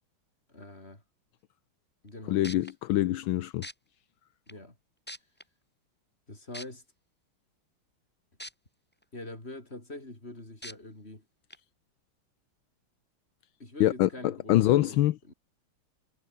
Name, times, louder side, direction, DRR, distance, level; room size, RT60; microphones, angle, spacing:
voice 1, 0.5-1.0 2.0-2.7 4.5-4.8 6.3-6.8 9.1-11.2 13.6-15.3, left 2 dB, 25° left, 5.9 m, -44 dB
sound 1, 2.1-2.2 2.4-2.7 3.6-3.7 4.5-4.6 5.1-5.4 6.5-6.7 8.4-8.5 9.0-9.1 10.6-10.7 11.5-11.6, equal, 5° left, 4.2 m, -41 dB
voice 2, 2.3-3.7 13.8-15.2, left 14 dB, 75° left, 1.5 m, -25 dB
omnidirectional pair, 2.4 m